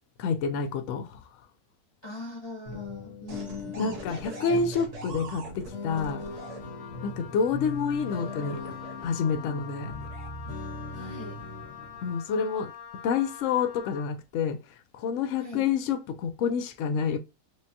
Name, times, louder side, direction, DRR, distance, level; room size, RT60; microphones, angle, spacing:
voice 1, 0.2-1.2 3.8-6.3 7.0-8.7 9.0-9.9 12.0-12.7 13.0-14.6 14.9-17.2, left 6 dB, 70° left, 0.8 m, -28 dB
voice 2, 2.0-4.6 10.9-11.4 15.4-15.7, left 1 dB, 25° left, 0.6 m, -42 dB
sound 1, 2.7-12.1, left 3 dB, 55° left, 1.4 m, -39 dB
sound 2, 3.3-6.6 7.6-9.3 9.9-10.3, right 3 dB, 50° right, 0.4 m, -44 dB
Wind instrument woodwind instrument, 5.9-14.1, left 9 dB, 85° left, 1.1 m, -45 dB
5.1 x 2.2 x 2.7 m
omnidirectional pair, 1.6 m